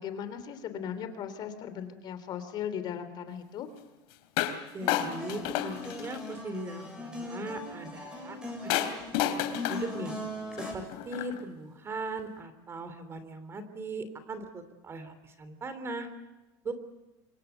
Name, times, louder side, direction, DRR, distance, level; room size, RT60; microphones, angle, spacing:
voice 1, 0.0-3.7, left 8 dB, 45° left, 11 dB, 3.1 m, -37 dB
sound 1, 4.4-4.6 4.9-6.4 8.7-11.4, left 12 dB, 65° left, 3.1 m, -31 dB
voice 2, 4.7-10.1 10.5-16.1 16.6-16.7, right 2 dB, 25° right, 11 dB, 3.2 m, -39 dB
sound 2, 4.8-10.7, left 1 dB, 10° right, 7.7 m, -40 dB
28.0 x 24.5 x 8.1 m, 1.1 s
supercardioid pair, 135°, 11 cm